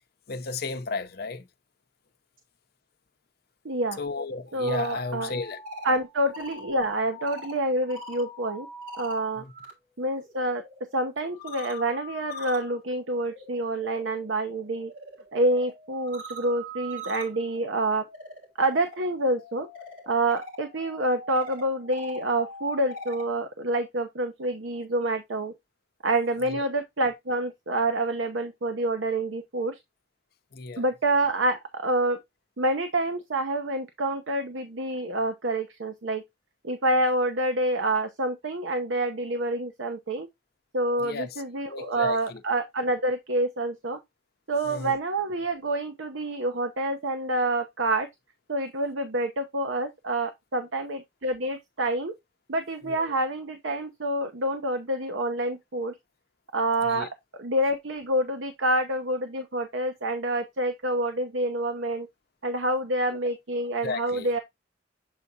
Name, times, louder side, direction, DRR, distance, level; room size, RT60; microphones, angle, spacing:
voice 1, 0.3-1.5 4.0-5.6 9.4-9.5 26.5-26.6 30.5-30.8 41.0-41.3 41.7-42.4 44.7-45.0 52.8-53.1 56.9-57.1 63.8-64.3, left 3 dB, 55° left, 0.6 m, -34 dB
voice 2, 3.6-4.0 4.5-5.3 5.8-8.7 9.0-9.4 10.0-10.6 10.9-14.9 15.3-18.0 18.6-19.7 20.1-25.5 26.0-29.8 30.8-32.2 32.6-36.2 36.6-40.3 40.7-44.0 44.5-48.1 48.5-52.1 52.5-55.9 56.5-57.1 57.4-62.1 62.4-64.4, right 1 dB, 90° right, 0.8 m, -27 dB
sound 1, 4.5-9.7 10.0-23.3, left 1 dB, 45° right, 3.2 m, -43 dB
7.5 x 4.7 x 2.7 m
head